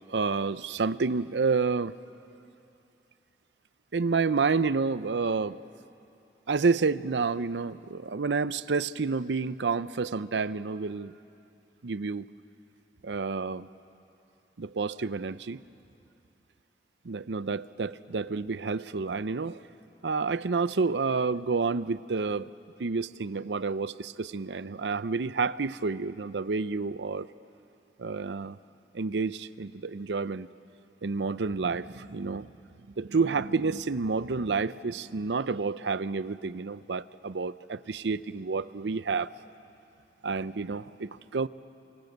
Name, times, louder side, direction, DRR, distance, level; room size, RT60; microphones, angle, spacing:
voice 1, 0.1-1.9 3.9-5.6 6.5-11.1 11.8-12.3 13.0-13.7 14.6-15.6 17.0-19.6 20.0-22.5 22.8-27.3 28.0-28.6 28.9-30.5 31.0-32.5 33.0-39.3 40.2-41.5, right 4 dB, 85° right, 15 dB, 0.6 m, -29 dB
28.0 x 25.5 x 8.0 m, 2.7 s
head